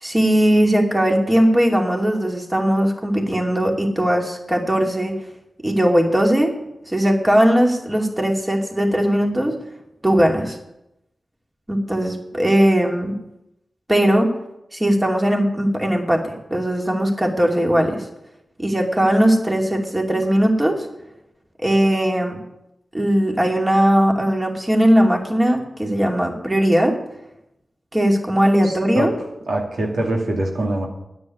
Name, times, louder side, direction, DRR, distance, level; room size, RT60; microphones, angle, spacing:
voice 1, 0.0-5.1 5.6-6.5 6.9-9.6 10.0-10.6 11.7-13.1 13.9-14.3 14.7-18.0 18.6-20.9 21.6-22.4 22.9-26.9 27.9-29.1, equal, 20° right, 1 dB, 2.6 m, -18 dB
voice 2, 28.6-29.2 29.5-30.9, right 1 dB, 85° right, 0 dB, 2.4 m, -23 dB
9.6 x 8.1 x 9.5 m, 0.86 s
cardioid pair, 60°, 0 cm